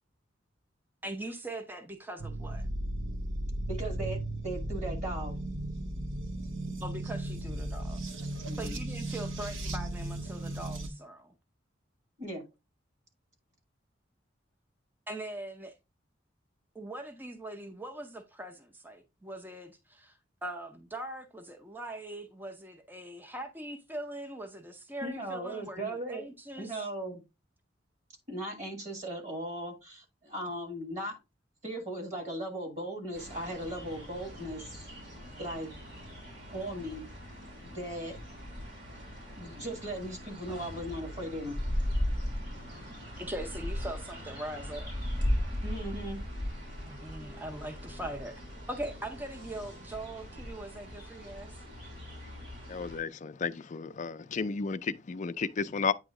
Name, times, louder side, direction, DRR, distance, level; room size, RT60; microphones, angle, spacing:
voice 1, 1.0-2.7 6.8-8.3 8.6-11.3 15.1-15.8 16.7-26.8 43.2-45.0 46.9-48.4 48.7-51.5, right 1 dB, 10° right, 0.7 m, -41 dB
sound 1, 2.2-10.9, right 1 dB, 85° right, 0.9 m, -36 dB
voice 2, 3.7-5.4 8.5-8.8 12.2-12.5 25.0-26.2 26.6-27.2 28.3-31.2 31.6-34.7 35.4-35.7 36.5-37.0 37.6-38.2 39.4-41.6 45.6-46.2, right 1 dB, 40° right, 2.1 m, -37 dB
sound 2, 33.1-53.0, equal, 60° right, 3.8 m, -38 dB
voice 3, 52.7-55.9, left 5 dB, 40° left, 0.4 m, -33 dB
8.8 x 3.0 x 3.7 m
head